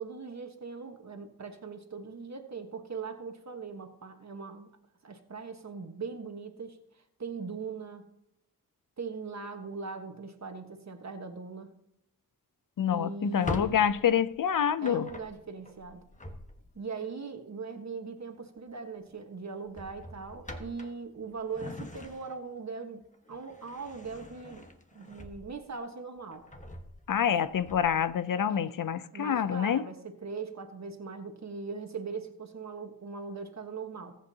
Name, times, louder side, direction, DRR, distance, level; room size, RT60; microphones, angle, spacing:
voice 1, 0.0-4.7 5.0-8.1 9.0-11.7 12.9-13.8 14.8-16.0 16.7-23.0 23.3-24.7 24.9-26.5 27.3-27.4 28.5-28.8 29.1-34.2, right 5 dB, 50° right, 1.4 m, -40 dB
voice 2, 12.8-15.1 27.1-29.8, left 8 dB, 60° left, 0.6 m, -27 dB
Drawer open or close, 13.2-16.9 18.4-18.7 19.0-19.2 19.7-22.6 23.0-25.8 26.2-28.1, left 1 dB, 20° left, 1.4 m, -44 dB
20.5 x 8.2 x 2.9 m
wide cardioid pair, 80°, 36 cm